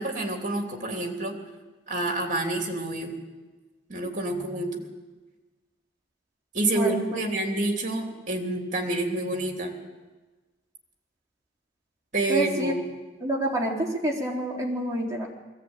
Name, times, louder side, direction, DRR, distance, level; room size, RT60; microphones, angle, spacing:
voice 1, 0.0-1.3 1.9-3.1 3.9-4.8 6.5-9.7 12.1-12.8, right 2 dB, 40° right, 2 dB, 3.2 m, -28 dB
voice 2, 6.7-7.2 12.3-12.7 13.2-15.3, right 1 dB, 20° right, -2 dB, 3.9 m, -27 dB
22.0 x 15.5 x 9.0 m, 1.2 s
head